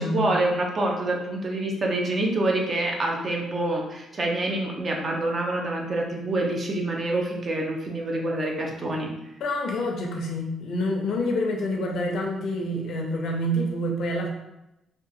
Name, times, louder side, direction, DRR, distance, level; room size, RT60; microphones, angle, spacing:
voice 1, 0.0-9.1, right 2 dB, 40° right, 0 dB, 0.6 m, -26 dB
voice 2, 9.4-14.3, left 1 dB, 70° left, 1 dB, 0.5 m, -27 dB
2.8 x 2.3 x 2.6 m, 0.90 s
cardioid pair, 90°, 0 cm